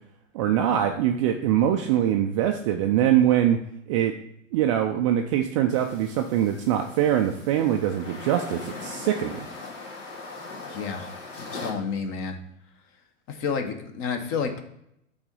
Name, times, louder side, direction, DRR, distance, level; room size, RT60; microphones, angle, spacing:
voice 1, 0.3-3.6 3.9-4.2 4.5-9.5, right 10 dB, 25° right, 4 dB, 0.4 m, -23 dB
sound 1, 5.7-11.7, left 3 dB, 70° left, 2.6 m, -40 dB
voice 2, 10.6-11.1 11.4-12.4 13.3-14.6, left 5 dB, 30° left, 7 dB, 1.0 m, -30 dB
5.9 x 3.9 x 5.4 m, 0.76 s
hypercardioid pair, 115°, 39 cm